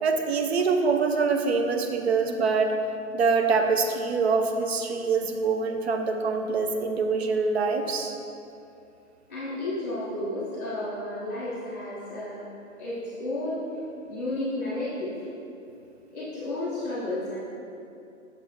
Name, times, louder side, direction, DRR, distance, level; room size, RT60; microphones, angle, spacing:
voice 1, 0.0-2.8 3.1-8.2, right 4 dB, 50° right, 5 dB, 0.6 m, -25 dB
voice 2, 9.3-12.5 12.8-13.7 14.0-15.3 16.1-17.4, left 1 dB, 15° left, -15 dB, 0.5 m, -32 dB
6.5 x 4.2 x 4.4 m, 2.7 s
hypercardioid pair, 155°, 43 cm